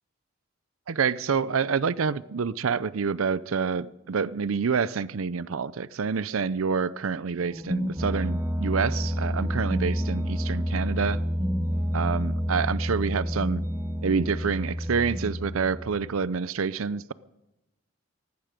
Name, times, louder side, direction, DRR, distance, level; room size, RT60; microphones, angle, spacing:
voice 1, 0.9-11.2 11.9-13.6 14.0-17.1, right 5 dB, 85° right, 0.6 m, -27 dB
sound 1, 7.5-16.3, equal, 10° right, 0.7 m, -29 dB
18.5 x 15.0 x 5.1 m
head